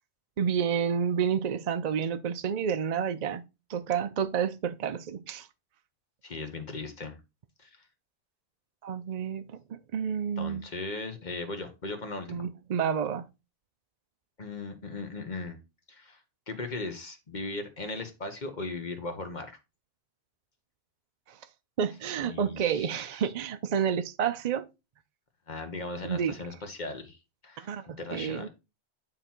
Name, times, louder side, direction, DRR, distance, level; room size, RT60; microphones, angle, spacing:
voice 1, 0.4-3.4 3.7-5.5 8.8-10.6 12.3-13.3 21.3-21.4 21.8-24.7 26.0-26.4 27.6-27.8 28.1-28.5, right 7 dB, 55° right, 0.4 m, -29 dB
voice 2, 6.2-7.2 7.6-7.8 10.4-12.5 14.4-15.6 15.9-16.2 16.5-19.6 22.2-23.2 25.5-27.2 27.4-27.7 28.0-28.5, left 3 dB, 40° left, 1.4 m, -38 dB
8.9 x 3.9 x 4.4 m
omnidirectional pair, 1.2 m